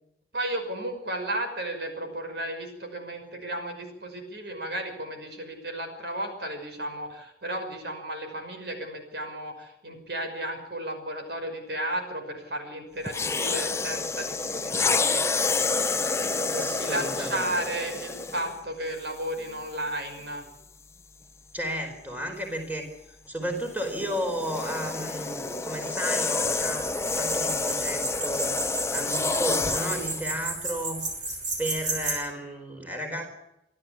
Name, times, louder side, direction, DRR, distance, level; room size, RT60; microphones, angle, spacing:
voice 1, 0.3-15.3 16.1-20.4, right 1 dB, 65° right, 5 dB, 5.8 m, -34 dB
sound 1, 13.1-18.6 19.4-19.6 23.6-30.3, left 3 dB, 15° left, 0.7 m, -28 dB
voice 2, 16.5-17.5 21.5-26.9 27.1-28.6 28.9-31.0 31.6-33.3, equal, 10° right, 3 dB, 4.5 m, -33 dB
sound 2, 26.4-32.1, right 2 dB, 45° right, 7.9 m, -33 dB
27.0 x 13.0 x 8.5 m, 0.85 s
head